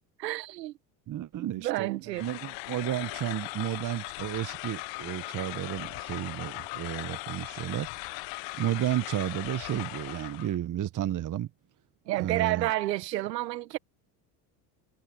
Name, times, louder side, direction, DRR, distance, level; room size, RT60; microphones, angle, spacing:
voice 1, 0.2-0.7 1.4-2.3 12.1-13.8, right 16 dB, 90° right, 1.5 m, -30 dB
voice 2, 1.1-1.9 2.2-7.9 8.6-11.5 12.2-12.7, right 12 dB, 40° right, 1.2 m, -32 dB
sound 1, 2.1-10.6, left 23 dB, 65° left, 1.3 m, -39 dB
hypercardioid pair, 80°, 48 cm